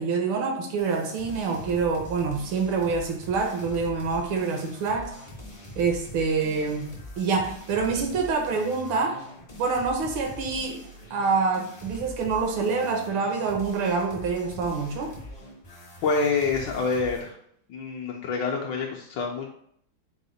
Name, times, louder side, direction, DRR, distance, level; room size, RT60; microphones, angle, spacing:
voice 1, 0.0-5.1 5.8-9.2 9.6-15.1, right 4 dB, 80° right, 3 dB, 1.4 m, -26 dB
sound 1, 0.8-17.3, left 1 dB, 40° left, 0.5 m, -43 dB
voice 2, 16.0-17.4 17.7-19.5, left 4 dB, 75° left, 0 dB, 1.1 m, -27 dB
4.8 x 2.1 x 3.9 m, 0.66 s
omnidirectional pair, 2.3 m